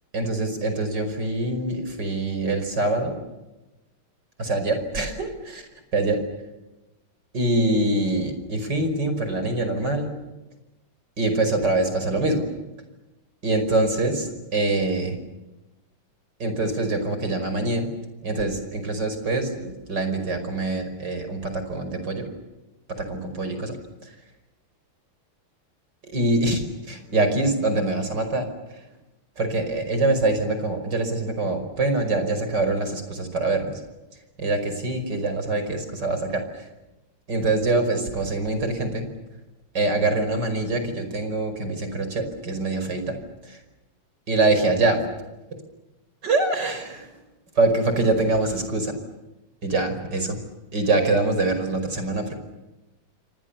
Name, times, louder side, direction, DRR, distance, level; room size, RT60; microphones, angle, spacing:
voice 1, 0.1-3.1 4.4-6.2 7.3-10.1 11.2-12.4 13.4-15.2 16.4-17.9 18.2-22.3 23.0-23.8 24.0-24.1 26.0-26.6 26.9-28.5 29.4-33.7 34.4-36.7 37.3-39.1 39.7-43.2 43.4-43.6 44.3-45.0 46.2-47.1 47.6-48.9 49.6-50.4 50.7-52.4, right 2 dB, 50° right, 8 dB, 5.9 m, -24 dB
28.5 x 25.5 x 7.1 m, 1.0 s
omnidirectional pair, 2.4 m